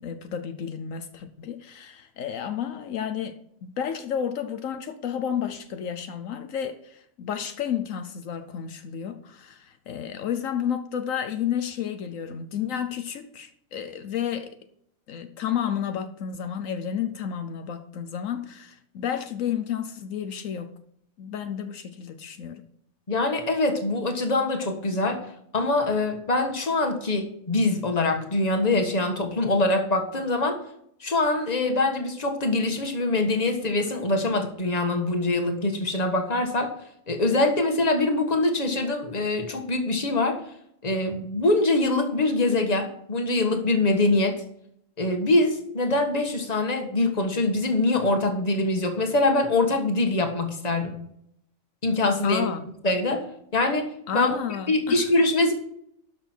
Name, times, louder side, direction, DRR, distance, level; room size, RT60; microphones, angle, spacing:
voice 1, 0.0-14.6 15.1-20.7 21.2-22.6 52.2-52.6 54.1-55.0, left 8 dB, 75° left, 9 dB, 1.1 m, -31 dB
voice 2, 23.1-25.2 25.5-30.6 31.0-36.7 37.1-40.4 40.8-44.4 45.0-50.9 51.8-52.5 52.8-53.3 53.5-54.4 54.7-55.5, left 2 dB, 30° left, 5 dB, 1.5 m, -24 dB
12.0 x 6.2 x 4.4 m, 0.70 s
omnidirectional pair, 1.4 m